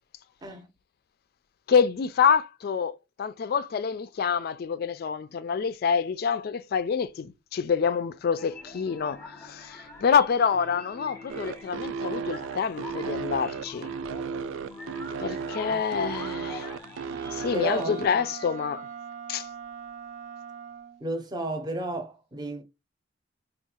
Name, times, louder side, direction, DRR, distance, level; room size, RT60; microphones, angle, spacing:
voice 1, 1.7-13.9 15.2-16.7 17.3-18.9 19.3-19.5, left 6 dB, 50° left, 0.3 m, -27 dB
sound 1, 8.4-19.0, left 2 dB, 15° left, 0.7 m, -45 dB
sound 2, 11.3-18.1, right 5 dB, 90° right, 0.3 m, -34 dB
Wind instrument woodwind instrument, 17.0-21.1, right 7 dB, 70° right, 0.7 m, -41 dB
voice 2, 17.5-18.0 21.0-22.6, right 1 dB, 20° right, 0.7 m, -32 dB
4.5 x 2.3 x 2.8 m
head